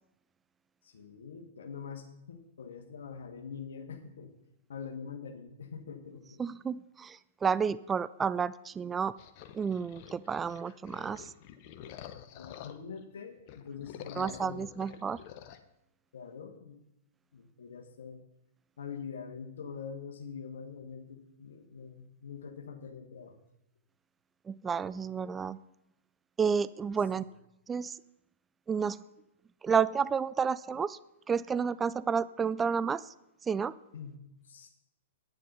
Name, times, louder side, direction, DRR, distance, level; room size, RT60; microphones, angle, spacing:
voice 1, 0.8-4.3 4.7-6.4 12.3-14.7 16.1-16.8 17.3-18.2 18.8-23.4 27.2-27.3 33.9-34.7, left 6 dB, 70° left, 3 dB, 1.4 m, -44 dB
voice 2, 6.4-9.1 9.5-11.3 14.2-15.2 24.5-25.6 26.4-27.2 27.7-28.0 28.7-29.0 29.6-31.0 31.3-33.1 33.4-33.7, right 6 dB, 15° right, 18 dB, 0.3 m, -31 dB
sound 1, 9.2-13.0 13.4-15.6, left 10 dB, 45° left, 0.9 m, -48 dB
10.0 x 9.3 x 5.4 m, 0.87 s
figure-of-eight pair, 110°, 0 cm